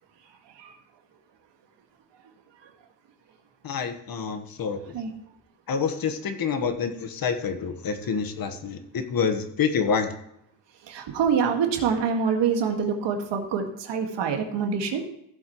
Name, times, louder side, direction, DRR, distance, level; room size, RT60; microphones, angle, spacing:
voice 1, 3.6-4.8 5.7-10.1, left 6 dB, 55° left, 8 dB, 1.3 m, -27 dB
voice 2, 10.9-15.0, right 6 dB, 80° right, 4 dB, 1.9 m, -25 dB
16.0 x 7.2 x 3.0 m, 0.77 s
cardioid pair, 110°, 43 cm